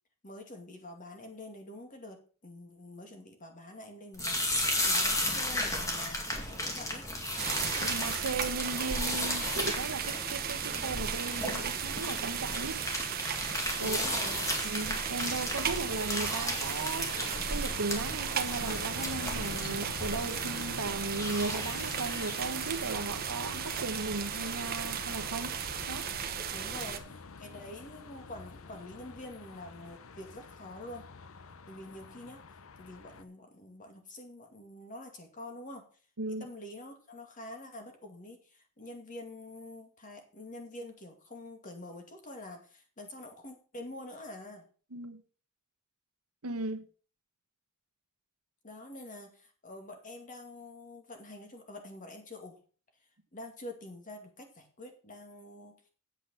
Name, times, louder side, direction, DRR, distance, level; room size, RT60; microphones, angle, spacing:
voice 1, 0.2-7.1 13.8-14.5 26.5-31.1 31.7-32.4 32.8-35.9 36.4-44.7 48.6-52.6 53.3-55.9, left 1 dB, 35° left, 2.3 m, -46 dB
sound 1, 4.1-22.9, left 1 dB, 15° left, 2.1 m, -35 dB
sound 2, 7.4-27.0, right 8 dB, 45° right, 1.1 m, -35 dB
voice 2, 7.7-12.8 13.8-14.0 14.6-17.1 17.5-25.5 25.9-26.1 36.2-36.5 44.9-45.2 46.4-46.8, right 3 dB, 80° right, 1.2 m, -36 dB
sound 3, 13.5-33.2, left 4 dB, 65° left, 0.7 m, -46 dB
8.2 x 8.1 x 5.5 m
head